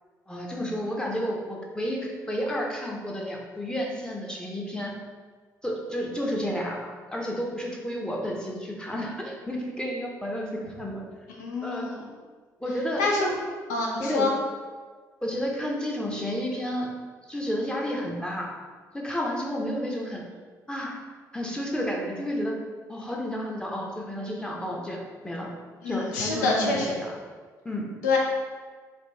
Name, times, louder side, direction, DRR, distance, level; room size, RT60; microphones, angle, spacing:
voice 1, 0.3-4.9 5.6-11.0 11.6-11.9 12.6-13.0 14.0-14.3 15.2-16.9 17.3-18.5 18.9-20.2 20.7-21.0 21.3-22.6 22.9-25.5 25.9-27.1 27.6-27.9, equal, 10° left, -1 dB, 0.7 m, -31 dB
voice 2, 11.4-12.1 13.0-13.3 13.7-14.3 25.8-27.0 28.0-28.2, left 3 dB, 75° left, -2 dB, 0.6 m, -26 dB
4.1 x 2.4 x 3.3 m, 1.5 s
figure-of-eight pair, 45°, 9 cm